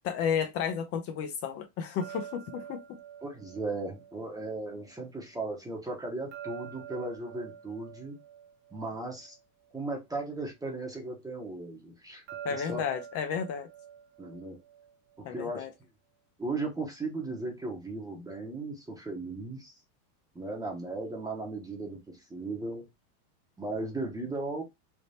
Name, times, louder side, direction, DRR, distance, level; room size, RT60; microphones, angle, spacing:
voice 1, 0.0-2.8 12.4-13.7 15.2-15.7, left 7 dB, 30° left, 0.5 m, -32 dB
sound 1, 2.0-5.1 6.3-9.8 12.3-15.4, right 9 dB, 40° right, 1.2 m, -47 dB
voice 2, 3.2-8.2 8.7-9.3 9.7-12.2 12.5-12.8 14.2-14.6 15.2-15.7 16.4-19.8 20.3-22.8 23.6-24.6, right 2 dB, 10° right, 0.8 m, -36 dB
3.5 x 2.9 x 2.7 m
supercardioid pair, 120°, 46 cm